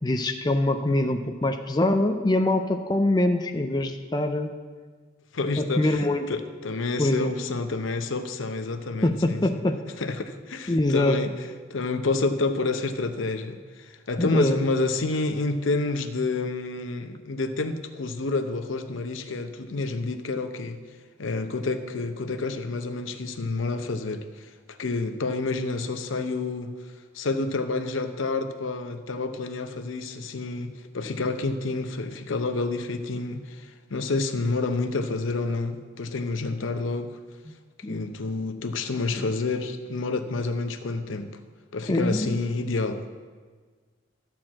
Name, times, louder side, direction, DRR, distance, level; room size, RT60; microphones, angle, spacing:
voice 1, 0.0-4.5 5.6-6.3 7.0-7.4 9.0-9.8 10.7-11.2 14.2-14.6 37.8-38.0 39.2-39.3 41.9-42.4, left 1 dB, 20° left, 5 dB, 0.4 m, -24 dB
voice 2, 5.3-9.6 10.0-11.3 11.7-20.8 21.2-24.5 24.8-26.7 27.1-37.2 37.9-41.3 41.7-43.0, left 3 dB, 85° left, 8 dB, 0.7 m, -29 dB
12.5 x 4.5 x 7.4 m, 1.5 s
head